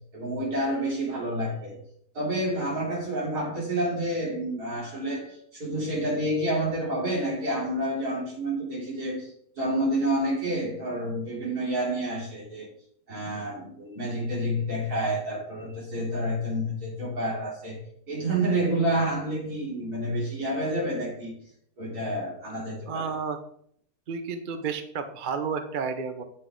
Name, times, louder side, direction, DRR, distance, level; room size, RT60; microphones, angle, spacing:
voice 1, 0.1-1.8 2.1-12.7 13.1-21.3 21.8-23.1, right 1 dB, 70° right, -5 dB, 4.0 m, -29 dB
voice 2, 22.9-23.4 24.1-26.2, right 5 dB, 45° right, 8 dB, 0.7 m, -31 dB
8.6 x 7.8 x 3.8 m, 0.66 s
omnidirectional pair, 1.7 m